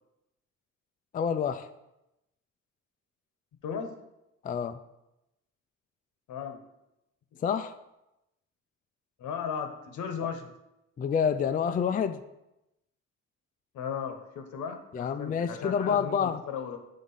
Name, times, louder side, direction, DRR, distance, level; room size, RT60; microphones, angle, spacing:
voice 1, 1.1-1.7 4.4-4.8 7.4-7.8 11.0-12.2 14.9-16.4, left 7 dB, 30° left, 9 dB, 0.3 m, -28 dB
voice 2, 3.6-3.9 6.3-6.6 7.3-7.4 9.2-10.5 13.7-16.8, left 7 dB, 75° left, 6 dB, 1.0 m, -36 dB
7.3 x 3.6 x 5.5 m, 0.90 s
cardioid pair, 90°, 30 cm